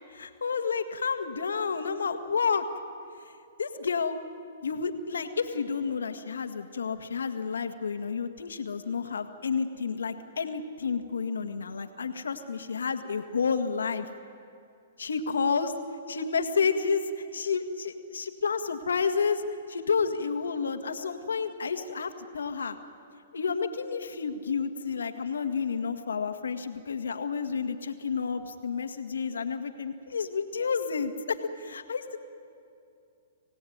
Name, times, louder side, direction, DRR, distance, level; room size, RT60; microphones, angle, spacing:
voice 1, 0.1-2.6 3.6-4.2 4.6-14.1 15.0-15.7 16.1-19.4 19.7-22.8 23.3-32.2, left 5 dB, 90° left, 8 dB, 1.9 m, -30 dB
26.5 x 17.0 x 9.5 m, 2.5 s
hypercardioid pair, 135°, 0 cm